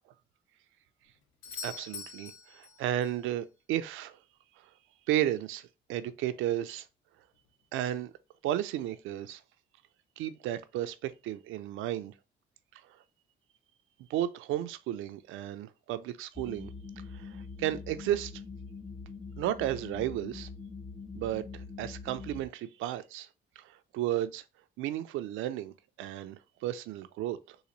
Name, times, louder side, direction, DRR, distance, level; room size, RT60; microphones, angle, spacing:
Doorbell, 1.4-3.3 7.3-7.4, left 5 dB, 90° left, 0.9 m, -44 dB
voice 1, 1.6-4.2 4.6-4.7 5.1-6.9 7.7-8.1 8.4-9.4 10.2-12.1 12.8-13.0 14.1-16.7 17.0-18.4 19.4-20.5 21.2-23.3 23.6-24.4 24.8-27.6, right 12 dB, 90° right, 0.4 m, -33 dB
sound 1, 16.4-22.5, left 4 dB, 10° left, 0.4 m, -44 dB
3.8 x 2.6 x 3.0 m
cardioid pair, 90°, 20 cm